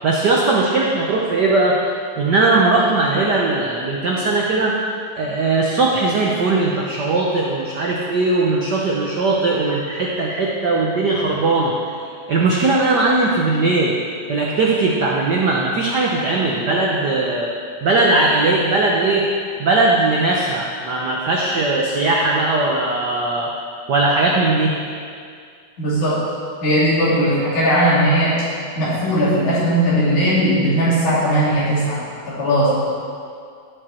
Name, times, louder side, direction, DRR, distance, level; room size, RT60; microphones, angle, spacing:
voice 1, 0.0-1.8 2.2-4.7 5.1-11.8 12.3-14.0 14.3-17.5 17.8-19.3 19.6-23.5 23.9-24.8, right 2 dB, 80° right, -2 dB, 0.9 m, -19 dB
voice 2, 25.8-26.2 26.6-28.3 28.7-32.0 32.4-32.8, equal, 80° left, -9 dB, 4.8 m, -18 dB
16.0 x 6.8 x 4.4 m, 2.2 s
omnidirectional pair, 3.3 m